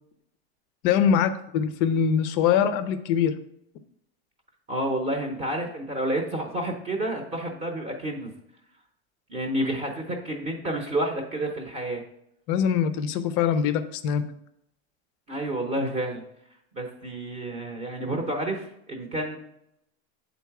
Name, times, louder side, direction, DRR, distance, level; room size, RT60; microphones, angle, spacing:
voice 1, 0.8-3.4 12.5-14.2, left 8 dB, 30° left, 11 dB, 0.4 m, -23 dB
voice 2, 4.7-8.3 9.3-12.0 15.3-16.2 16.7-19.4, right 1 dB, 20° right, 2 dB, 0.8 m, -29 dB
8.3 x 3.9 x 4.7 m, 0.78 s
supercardioid pair, 160°, 34 cm